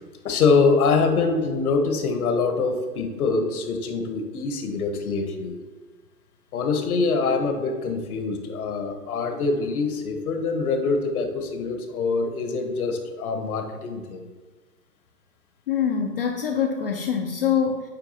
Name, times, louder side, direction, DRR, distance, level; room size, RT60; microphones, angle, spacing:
voice 1, 0.2-5.6 6.5-14.2, left 4 dB, 65° left, 5 dB, 1.0 m, -24 dB
voice 2, 15.7-17.8, left 7 dB, 40° left, 2 dB, 0.4 m, -24 dB
8.2 x 4.2 x 2.8 m, 1.3 s
hypercardioid pair, 130°, 48 cm